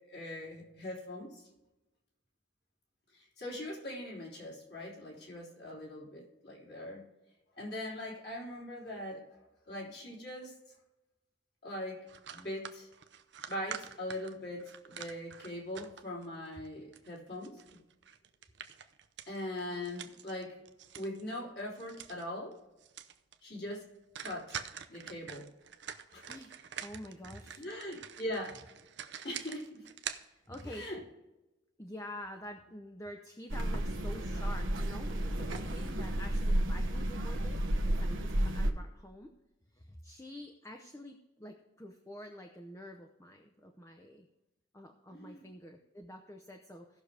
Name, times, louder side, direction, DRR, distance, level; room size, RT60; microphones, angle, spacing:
voice 1, 0.1-1.4 3.1-7.0 7.6-9.2 9.7-10.5 11.6-12.1 12.3-12.9 13.5-17.6 19.3-20.6 20.9-22.6 23.4-23.8 24.2-24.6 24.9-25.5 26.1-26.3 27.6-28.7 29.2-29.9 30.6-31.0 45.1-45.4, left 1 dB, 55° left, -4 dB, 3.3 m, -41 dB
sound 1, 12.1-16.3 16.6-21.3 21.6-22.2 22.5-22.6 22.8-23.3 23.7-23.8 24.1-30.9, right 8 dB, 65° right, 0.7 m, -46 dB
voice 2, 26.8-27.6 30.2-30.9 31.8-39.3 39.7-44.3 44.7-47.0, left 1 dB, 15° left, 4 dB, 0.7 m, -48 dB
sound 2, 33.5-38.7, right 1 dB, 85° right, 1.2 m, -32 dB
17.5 x 6.4 x 3.4 m, 1.0 s
head